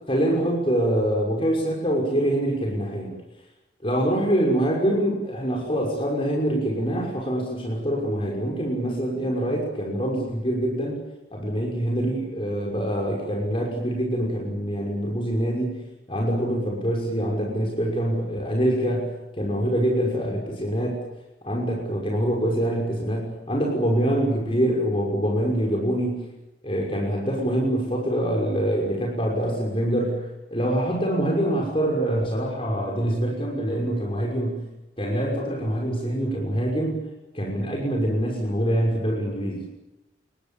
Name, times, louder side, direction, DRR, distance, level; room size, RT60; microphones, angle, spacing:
voice 1, 0.1-3.1 3.8-11.0 11.3-21.0 21.4-26.3 26.6-34.7 35.0-37.0 37.3-39.7, right 1 dB, 30° left, -1 dB, 6.0 m, -25 dB
27.5 x 21.5 x 7.2 m, 0.98 s
head